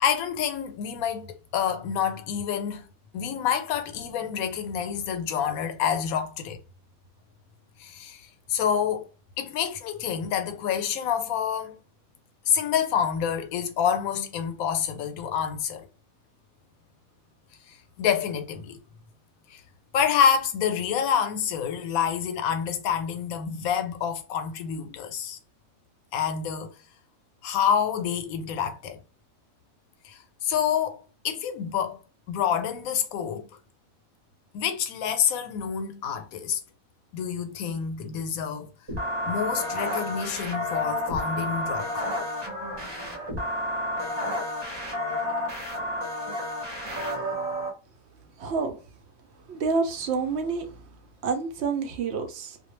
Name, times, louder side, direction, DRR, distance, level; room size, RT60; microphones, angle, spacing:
voice 1, 0.0-2.9 3.1-6.6 7.8-8.2 8.5-9.1 9.4-11.8 12.5-15.9 17.7-18.8 19.5-19.6 19.9-25.4 26.1-26.7 27.4-29.0 30.0-31.0 31.2-32.0 32.3-33.5 34.5-36.6 37.1-38.7 39.2-42.1, left 8 dB, 85° left, 1.0 m, -27 dB
sound 1, 38.9-47.7, left 1 dB, 25° right, 0.7 m, -30 dB
voice 2, 48.4-48.8 49.5-50.8 51.2-52.6, right 4 dB, 65° right, 0.7 m, -28 dB
2.4 x 2.1 x 3.0 m
omnidirectional pair, 1.5 m